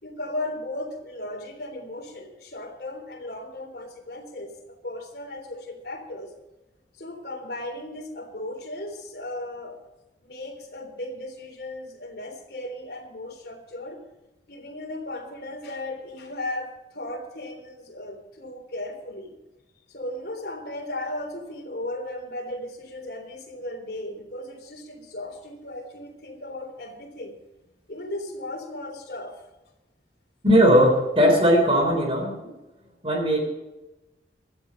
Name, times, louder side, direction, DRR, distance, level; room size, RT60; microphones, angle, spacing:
voice 1, 0.0-6.3 7.0-9.8 10.2-14.0 14.5-19.4 19.9-27.4 27.9-29.4, left 1 dB, 60° left, 1 dB, 3.7 m, -36 dB
voice 2, 30.4-32.4 33.0-33.5, equal, 30° right, 3 dB, 3.6 m, -18 dB
16.5 x 12.0 x 5.3 m, 0.99 s
head